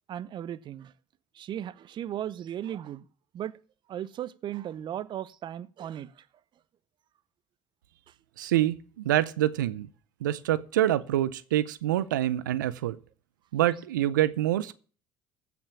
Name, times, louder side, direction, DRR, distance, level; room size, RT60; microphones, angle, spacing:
voice 1, 0.1-0.9 1.4-3.0 3.3-3.6 3.9-6.1, right 11 dB, 50° right, 0.7 m, -36 dB
voice 2, 8.4-8.8 9.0-9.9 10.2-13.0 13.5-14.7, right 13 dB, 85° right, 0.5 m, -26 dB
15.0 x 6.1 x 7.0 m
hypercardioid pair, 60°, 10 cm